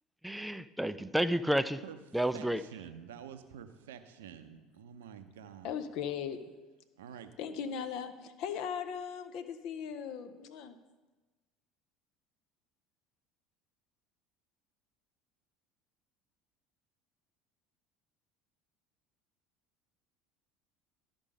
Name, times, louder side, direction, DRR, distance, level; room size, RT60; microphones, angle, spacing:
voice 1, 0.2-1.8 2.1-2.6, equal, 5° right, 14 dB, 0.3 m, -30 dB
voice 2, 2.3-5.7 7.0-7.3, right 8 dB, 65° right, 10 dB, 0.6 m, -48 dB
voice 3, 5.6-6.4 7.4-10.7, left 7 dB, 55° left, 9 dB, 0.7 m, -38 dB
12.0 x 5.3 x 5.3 m, 1.2 s
figure-of-eight pair, 65°, 0 cm